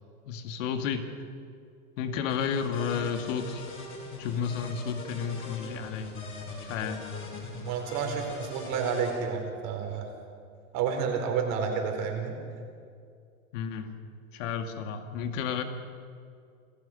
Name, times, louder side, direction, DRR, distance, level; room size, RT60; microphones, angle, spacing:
voice 1, 0.3-1.1 2.0-3.7 4.2-6.2 6.6-7.0 13.5-14.0 14.3-15.6, left 7 dB, 60° left, 7 dB, 2.0 m, -32 dB
sound 1, 2.3-9.1, left 2 dB, 30° left, 6.5 m, -41 dB
voice 2, 7.7-10.1 10.7-12.3, right 6 dB, 45° right, 3 dB, 4.5 m, -30 dB
28.0 x 14.5 x 6.7 m, 2.3 s
hypercardioid pair, 105°, 43 cm